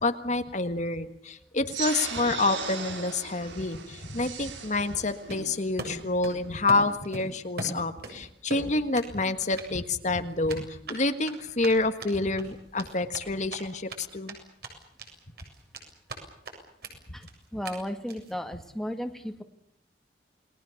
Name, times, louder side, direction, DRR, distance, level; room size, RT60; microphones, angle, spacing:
voice 1, 0.0-14.3, left 2 dB, 40° left, 8 dB, 1.6 m, -28 dB
sound 1, 1.7-6.7, right 6 dB, 90° right, 4.8 m, -38 dB
Run, 5.3-6.4 6.7-8.2 8.5-9.1 9.4-9.6 10.5-14.0 14.3-14.4 14.6-15.1 15.4-16.2 16.4-16.5 16.8-16.9 17.2-17.3 17.6-17.7 18.1-18.3, right 2 dB, 60° right, 7.4 m, -39 dB
voice 2, 17.5-19.4, equal, ahead, 6 dB, 2.0 m, -35 dB
29.5 x 21.0 x 7.1 m, 0.70 s
head